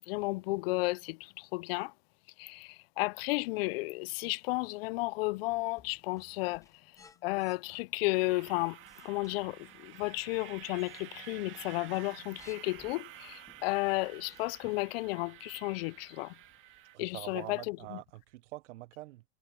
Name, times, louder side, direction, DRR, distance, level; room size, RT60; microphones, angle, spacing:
voice 1, 0.1-1.9 2.4-6.6 7.2-8.8 9.0-16.3 17.0-18.0, left 23 dB, 55° left, 0.4 m, -33 dB
sound 1, 4.7-12.7, left 15 dB, 30° left, 3.6 m, -69 dB
sound 2, 5.5-7.6 8.5-11.0 11.3-13.0 13.5-15.0 15.4-15.5, left 5 dB, 10° left, 0.6 m, -60 dB
sound 3, 8.1-17.0, right 14 dB, 35° right, 2.1 m, -51 dB
voice 2, 16.9-19.2, right 18 dB, 80° right, 0.6 m, -45 dB
supercardioid pair, 145°, 36 cm